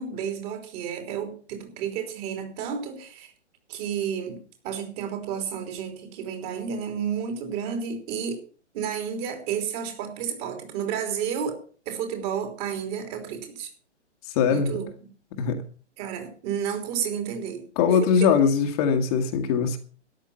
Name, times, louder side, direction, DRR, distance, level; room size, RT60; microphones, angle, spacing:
voice 1, 0.0-3.3 3.7-4.4 4.6-8.4 8.7-13.7 14.5-15.1 16.0-18.3, right 7 dB, 30° right, 5 dB, 3.4 m, -31 dB
voice 2, 14.3-14.7 15.3-15.6 17.7-19.8, left 6 dB, 30° left, 4 dB, 1.7 m, -21 dB
13.5 x 10.5 x 5.7 m, 0.41 s
figure-of-eight pair, 125°, 35 cm